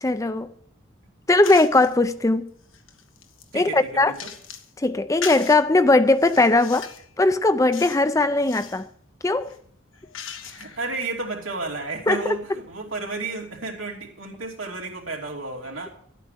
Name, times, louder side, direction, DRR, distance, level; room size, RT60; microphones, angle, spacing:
voice 1, 0.0-0.5 1.3-2.5 3.5-4.1 4.8-6.9 7.2-8.9 9.2-9.5 12.1-12.2, left 2 dB, 15° left, 0.4 m, -19 dB
sound 1, 1.4-1.9 2.5-4.7 5.2-5.6 6.1-7.1 7.7-8.1 8.4-8.8 9.4-10.9, left 7 dB, 90° left, 1.3 m, -38 dB
voice 2, 3.5-4.3 10.5-15.9, right 3 dB, 90° right, 2.9 m, -32 dB
12.0 x 9.0 x 6.6 m
head